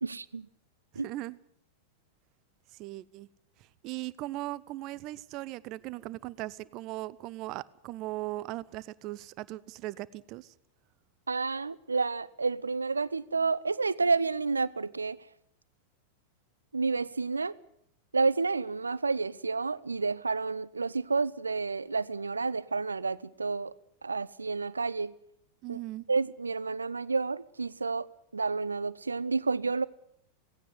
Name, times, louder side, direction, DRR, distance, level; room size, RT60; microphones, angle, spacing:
voice 1, 0.0-0.5 1.0-1.1 11.3-15.2 16.7-17.5 18.1-23.7 24.0-25.1 25.7-25.8 26.1-28.1 28.3-29.9, right 4 dB, 75° right, 0.7 m, -30 dB
voice 2, 1.0-1.4 2.8-3.3 3.8-10.5 25.6-26.0, right 17 dB, 40° right, 0.8 m, -38 dB
18.0 x 16.5 x 9.5 m
figure-of-eight pair, 90°, 0 cm